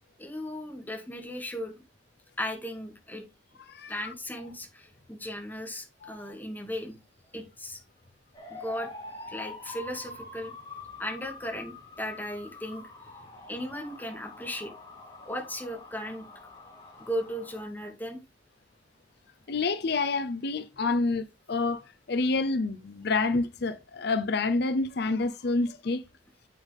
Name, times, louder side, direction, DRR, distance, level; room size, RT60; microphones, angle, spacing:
voice 1, 0.2-1.7 2.4-3.2 3.9-7.0 7.3-7.8 8.5-8.9 9.3-10.5 11.0-12.9 13.5-14.7 15.2-16.3 17.0-18.2, equal, 10° left, 2.3 m, -36 dB
voice 2, 3.7-4.1 6.0-6.1 19.5-26.0, left 3 dB, 65° left, 0.6 m, -28 dB
sound 1, 8.3-17.6, left 3 dB, 25° left, 4.2 m, -45 dB
8.6 x 8.1 x 3.5 m
head